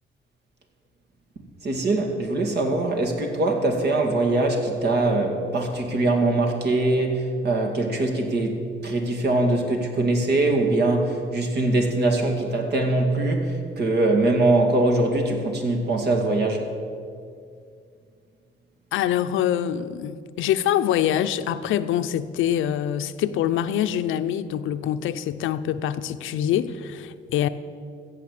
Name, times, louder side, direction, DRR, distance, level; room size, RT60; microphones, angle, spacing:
voice 1, 1.6-16.7, right 2 dB, 55° right, 4 dB, 2.4 m, -22 dB
voice 2, 18.9-27.5, left 10 dB, 85° left, 11 dB, 0.7 m, -25 dB
14.5 x 7.8 x 8.3 m, 2.3 s
cardioid pair, 90°, 20 cm